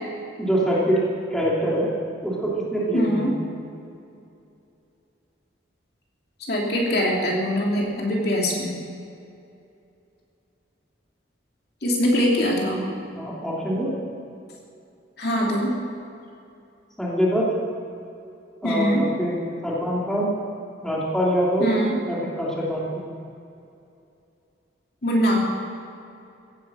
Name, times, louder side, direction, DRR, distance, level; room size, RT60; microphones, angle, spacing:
voice 1, 0.4-1.0 1.3-1.9 2.2-3.3 13.2-13.9 17.0-17.5 18.6-19.3 19.6-20.3 20.8-21.7 22.1-23.1, equal, 5° left, -6 dB, 2.9 m, -24 dB
voice 2, 2.9-3.4 6.5-8.8 11.8-12.9 15.2-15.7 18.6-19.1 21.6-22.0 25.0-25.5, equal, 55° left, -2 dB, 3.1 m, -22 dB
16.0 x 10.5 x 7.8 m, 2.6 s
head